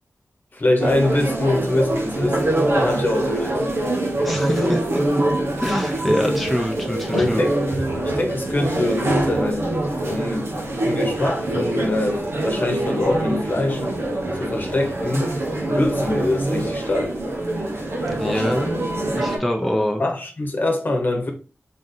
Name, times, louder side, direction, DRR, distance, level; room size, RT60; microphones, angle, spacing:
voice 1, 0.5-2.5 2.7-3.7 4.5-4.8 7.1-7.6 8.0-9.7 10.0-13.8 14.3-15.3 15.6-17.2 18.2-18.7 19.6-21.3, left 2 dB, 45° left, 1.0 m, -24 dB
sound 1, 0.8-19.4, right 1 dB, 85° right, 1.0 m, -24 dB
voice 2, 4.2-5.0 5.6-7.5 18.1-18.8 19.1-20.0, equal, ahead, 0.6 m, -24 dB
3.8 x 3.7 x 2.6 m
wide cardioid pair, 70°, 4 cm